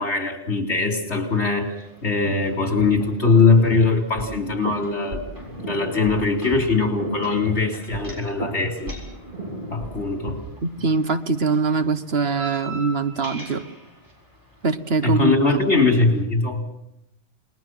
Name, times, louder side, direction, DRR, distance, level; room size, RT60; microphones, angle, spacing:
voice 1, 0.0-1.7 2.0-8.9 9.7-10.4 15.0-16.6, left 4 dB, 80° left, 3 dB, 4.1 m, -21 dB
sound 1, 1.2-16.2, right 2 dB, 15° right, 6.7 m, -45 dB
sound 2, 2.8-10.4, right 1 dB, 45° right, 2.9 m, -34 dB
voice 2, 10.6-13.6 14.6-15.3, right 4 dB, 65° right, 10 dB, 1.4 m, -23 dB
29.5 x 21.0 x 6.1 m, 0.82 s
omnidirectional pair, 1.1 m